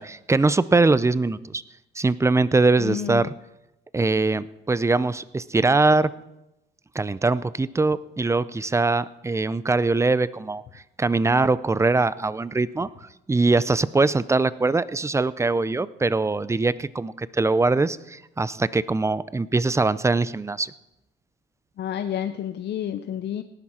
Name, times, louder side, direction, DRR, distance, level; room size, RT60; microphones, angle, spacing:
voice 1, 0.0-1.6 2.0-3.3 3.9-6.1 6.9-10.6 11.0-12.9 13.3-20.7, right 3 dB, 15° right, 17 dB, 0.5 m, -22 dB
voice 2, 2.8-3.3 21.8-23.4, left 10 dB, 60° left, 10 dB, 0.6 m, -29 dB
18.0 x 11.0 x 4.3 m, 0.90 s
cardioid pair, 90°, 20 cm